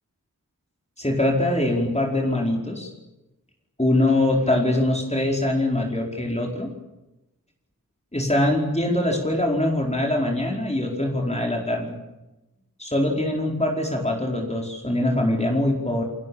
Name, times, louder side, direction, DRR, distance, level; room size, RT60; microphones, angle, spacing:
voice 1, 1.0-2.9 3.8-6.7 8.1-12.0 12.8-16.0, left 1 dB, 20° left, 0 dB, 4.7 m, -23 dB
28.5 x 21.5 x 7.2 m, 0.99 s
wide cardioid pair, 70°, 34 cm